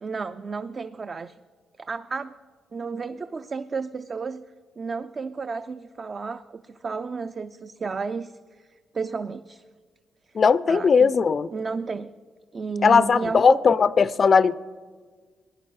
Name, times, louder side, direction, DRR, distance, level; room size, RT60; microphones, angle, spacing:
voice 1, 0.0-1.4 1.8-2.4 2.7-4.4 4.8-9.6 10.7-11.1 11.5-12.1 12.5-13.6, right 4 dB, 40° right, 0.3 m, -32 dB
voice 2, 10.3-11.5 12.8-14.5, left 5 dB, 50° left, 0.3 m, -18 dB
17.0 x 10.0 x 3.2 m
supercardioid pair, 70°, 0 cm